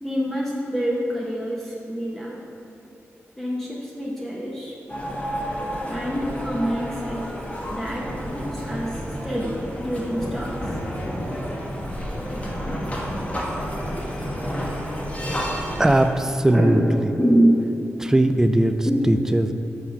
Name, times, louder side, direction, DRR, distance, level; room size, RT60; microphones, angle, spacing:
voice 1, 0.0-2.4 3.3-4.7 5.9-7.2 7.7-8.0 8.3-9.0 9.2-10.6 12.3-12.4 16.5-16.9 17.2-17.5 18.8-19.0, equal, 5° left, -4 dB, 1.0 m, -25 dB
sound 1, 4.9-16.1, equal, 25° left, 1.2 m, -30 dB
voice 2, 15.8-17.1 18.0-19.5, right 1 dB, 10° right, 8 dB, 0.4 m, -20 dB
6.1 x 3.9 x 5.8 m, 3.0 s
cardioid pair, 55°, 5 cm